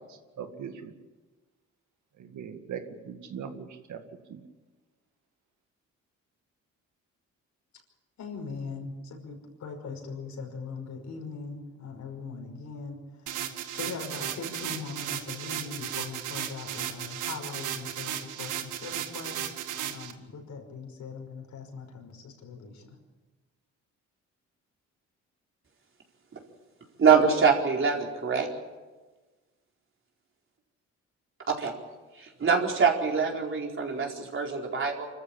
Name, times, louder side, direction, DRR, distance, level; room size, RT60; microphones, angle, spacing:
voice 1, 0.1-0.9 2.2-4.0 4.3-4.4, right 7 dB, 70° right, 7 dB, 2.2 m, -40 dB
voice 2, 8.2-13.0 13.3-13.4 13.7-19.5 19.9-22.9, left 4 dB, 65° left, 3 dB, 5.6 m, -40 dB
sound 1, 13.3-20.1, right 10 dB, 85° right, 1.8 m, -35 dB
voice 3, 27.0-28.5 31.5-31.7 32.2-35.1, right 5 dB, 40° right, 0 dB, 4.4 m, -24 dB
25.5 x 14.0 x 8.8 m, 1.3 s
cardioid pair, 90°, 30 cm